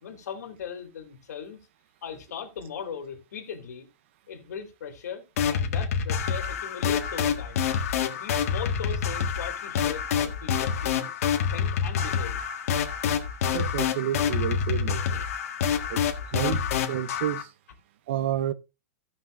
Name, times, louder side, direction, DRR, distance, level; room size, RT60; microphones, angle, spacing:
voice 1, 0.0-1.6 2.0-3.9 4.3-5.2 5.5-7.7 8.1-11.1 11.5-12.4, left 7 dB, 85° left, 2.5 m, -38 dB
sound 1, 5.4-17.4, left 7 dB, 60° left, 1.6 m, -27 dB
voice 2, 13.5-15.3 15.9-16.0 16.3-17.5 18.1-18.5, right 11 dB, 45° right, 0.6 m, -30 dB
16.5 x 5.8 x 2.5 m
supercardioid pair, 175°, 9 cm